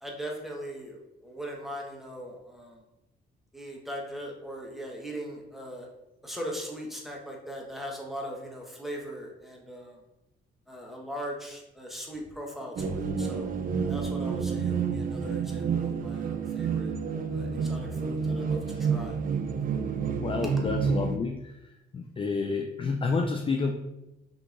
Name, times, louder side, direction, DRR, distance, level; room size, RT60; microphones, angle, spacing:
voice 1, 0.0-2.8 3.5-5.9 6.2-10.0 10.7-13.5 13.9-16.9 17.3-19.2 20.4-20.5, equal, ahead, -1 dB, 1.1 m, -40 dB
sound 1, 12.8-21.2, right 5 dB, 45° right, 0.4 m, -29 dB
voice 2, 20.2-21.5 21.9-23.7, left 4 dB, 25° left, 3 dB, 0.4 m, -29 dB
5.9 x 2.9 x 2.5 m, 0.93 s
cardioid pair, 90°, 20 cm